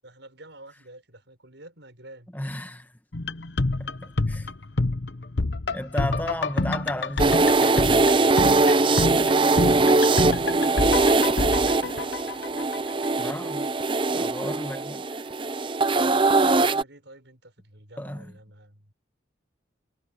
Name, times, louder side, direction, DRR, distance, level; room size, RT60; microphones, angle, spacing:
voice 1, 0.0-2.3 6.5-6.6 16.4-18.9, right 1 dB, 65° right, 7.0 m, -49 dB
voice 2, 2.3-3.0 3.6-4.5 5.7-8.1 13.2-13.7 14.1-15.3 18.0-18.3, left 1 dB, 10° left, 1.6 m, -34 dB
sound 1, 3.1-13.1 13.3-13.4, left 2 dB, 60° left, 1.0 m, -28 dB
sound 2, 7.2-16.8, right 3 dB, 25° right, 0.6 m, -21 dB
head